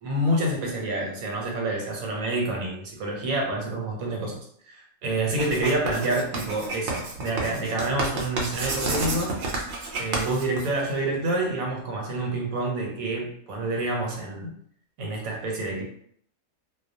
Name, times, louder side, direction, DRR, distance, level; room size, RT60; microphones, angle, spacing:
voice 1, 0.0-4.4 4.7-9.4 10.0-14.5 15.0-15.8, right 2 dB, 80° right, 0 dB, 1.1 m, -28 dB
Writing, 5.3-11.1, right 3 dB, 65° right, 0.8 m, -30 dB
2.3 x 2.2 x 2.6 m, 0.63 s
omnidirectional pair, 1.5 m